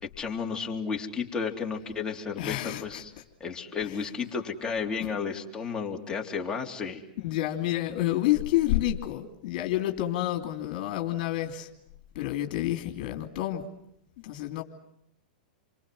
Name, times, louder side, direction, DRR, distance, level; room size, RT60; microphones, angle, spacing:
voice 1, 0.0-3.1 3.4-7.1, left 5 dB, 15° left, 1 dB, 3.5 m, -33 dB
voice 2, 2.4-3.0 3.8-4.0 5.0-5.1 7.2-11.7 12.1-13.7 14.2-14.6, left 14 dB, 55° left, 5 dB, 2.8 m, -29 dB
28.5 x 24.5 x 7.8 m, 0.77 s
hypercardioid pair, 120°, 5 cm